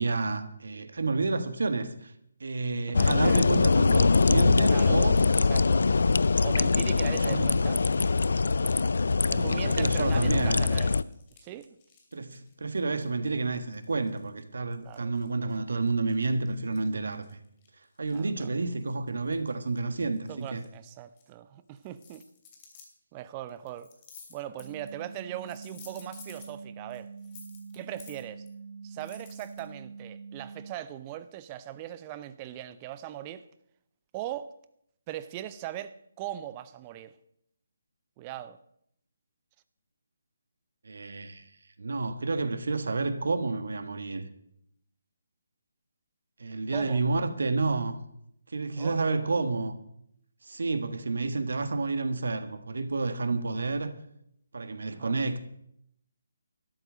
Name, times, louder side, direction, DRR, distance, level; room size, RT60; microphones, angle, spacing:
voice 1, 0.0-2.1 2.4-5.2 7.1-7.6 9.3-10.7 12.1-17.4 18.0-20.6 40.8-41.5 41.8-44.3 46.4-48.0 48.5-49.8 50.4-53.9 54.5-55.5, right 3 dB, 65° right, 1.4 m, -30 dB
sound 1, 2.9-11.0, left 4 dB, 65° left, 0.4 m, -23 dB
voice 2, 2.9-3.4 4.7-5.0 5.5-5.9 6.4-7.8 9.2-11.0 11.4-11.7 14.8-15.1 18.1-18.5 20.3-22.2 23.1-23.9 24.3-27.1 27.7-28.4 28.8-33.5 34.1-34.5 35.1-37.2 38.2-38.6 46.7-47.0 48.8-49.0 54.8-55.1, right 12 dB, 25° right, 0.6 m, -40 dB
sound 2, 10.7-14.4 14.7-18.5 18.8-21.2 21.8-22.9 23.5-25.1 25.3-26.5 26.9-28.5 28.9-29.6, left 6 dB, 25° left, 2.7 m, -54 dB
sound 3, 24.6-30.7, right 5 dB, 5° right, 2.0 m, -45 dB
12.5 x 8.0 x 7.6 m
figure-of-eight pair, 145°, 0 cm